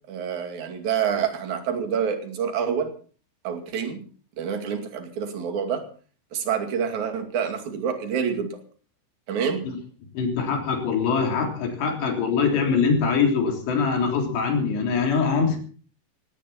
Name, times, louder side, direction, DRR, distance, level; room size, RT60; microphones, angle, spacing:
voice 1, 0.1-2.9 3.4-4.0 4.4-5.8 6.3-8.6 9.3-9.7, right 7 dB, 50° right, 6 dB, 3.4 m, -27 dB
voice 2, 10.1-15.6, left 5 dB, 80° left, 2 dB, 5.7 m, -23 dB
18.0 x 17.0 x 4.2 m, 0.40 s
omnidirectional pair, 4.9 m